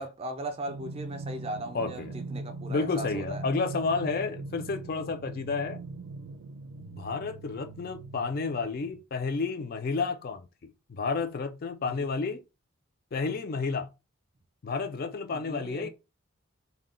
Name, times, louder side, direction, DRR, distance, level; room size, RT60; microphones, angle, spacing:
voice 1, 0.0-3.4 12.0-12.1 15.3-15.9, right 1 dB, 25° right, 0.4 m, -38 dB
sound 1, 0.7-9.0, right 3 dB, 90° right, 0.4 m, -41 dB
voice 2, 1.7-2.1 2.7-5.8 6.8-12.4 13.1-13.9 14.6-15.9, left 4 dB, 45° left, 0.3 m, -31 dB
2.2 x 2.0 x 3.6 m
head